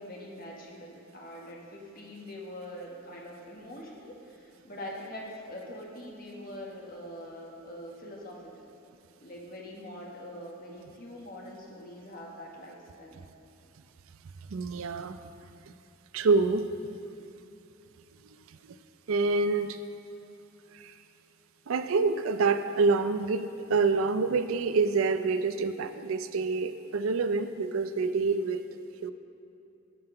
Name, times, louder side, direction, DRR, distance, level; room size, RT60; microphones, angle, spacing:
voice 1, 0.0-8.7 9.2-13.2, left 1 dB, 40° left, -2 dB, 1.4 m, -43 dB
voice 2, 14.5-15.2 16.1-16.7 19.1-19.8 20.7-20.9 21.7-28.6 29.0-29.1, right 4 dB, 70° right, 11 dB, 0.4 m, -27 dB
12.0 x 5.7 x 4.9 m, 2.9 s
head